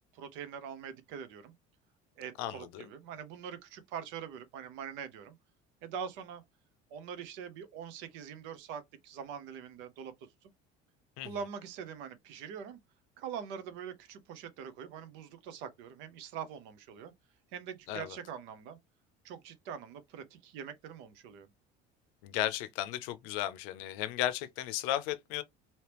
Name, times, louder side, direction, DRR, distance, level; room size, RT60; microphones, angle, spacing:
voice 1, 0.1-1.5 2.2-5.4 5.8-6.4 6.9-10.1 10.4-10.5 11.2-12.8 13.2-17.1 17.5-18.8 19.2-21.5, right 7 dB, 65° right, 0.7 m, -43 dB
voice 2, 2.4-2.8 11.2-11.3 17.9-18.1 22.2-25.4, left 13 dB, 80° left, 0.5 m, -34 dB
3.3 x 2.8 x 3.0 m
cardioid pair, 180°, 21 cm